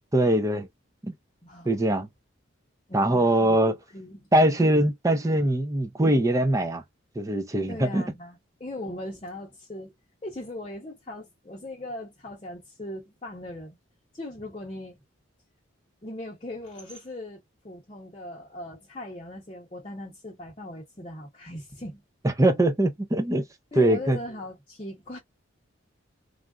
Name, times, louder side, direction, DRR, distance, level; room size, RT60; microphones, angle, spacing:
voice 1, 0.1-0.7 1.0-1.1 1.7-2.1 2.9-3.8 4.3-6.8 7.2-8.0 22.2-23.4 23.8-24.2, right 1 dB, 15° right, 0.4 m, -22 dB
voice 2, 2.9-3.6 3.9-4.3 7.7-9.9 10.2-13.8 14.1-15.0 16.0-22.0 23.7-25.2, left 1 dB, 25° left, 0.8 m, -39 dB
3.3 x 2.4 x 2.3 m
head